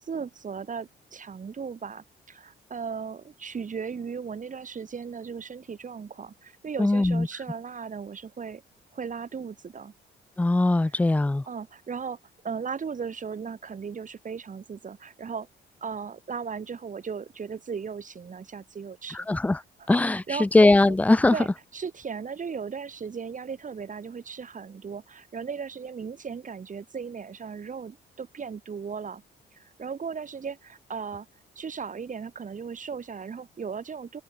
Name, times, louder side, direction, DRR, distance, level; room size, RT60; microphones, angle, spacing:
voice 1, 0.0-8.6 8.9-9.9 10.9-11.0 11.5-12.2 12.4-15.5 15.8-19.3 19.8-20.5 21.3-29.2 29.5-31.3 31.6-34.2, right 6 dB, 40° right, 3.3 m, -36 dB
voice 2, 6.8-7.3 10.4-11.4 19.1-19.6 19.9-21.3, left 2 dB, 5° left, 0.4 m, -20 dB
open air
cardioid pair, 90°, 20 cm